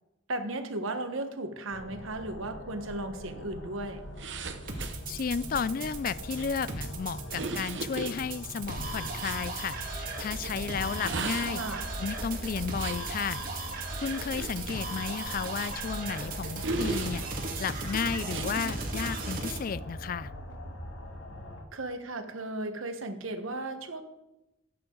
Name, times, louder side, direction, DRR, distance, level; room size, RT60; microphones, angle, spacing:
voice 1, 0.3-4.0 11.5-11.9 21.7-24.0, right 2 dB, 85° right, 7 dB, 1.3 m, -35 dB
sound 1, 1.7-21.6, left 1 dB, 65° left, 1.5 m, -43 dB
sound 2, 4.2-9.4 10.8-13.1 13.8-16.0 16.6-17.6 18.2-18.5, right 3 dB, 60° right, 1.0 m, -39 dB
sound 3, 4.7-19.6, right 3 dB, 45° right, 1.9 m, -37 dB
voice 2, 5.1-11.6 12.0-13.4 14.0-17.2 17.6-20.3, left 6 dB, 45° left, 18 dB, 0.3 m, -33 dB
16.5 x 8.7 x 3.9 m, 0.97 s
head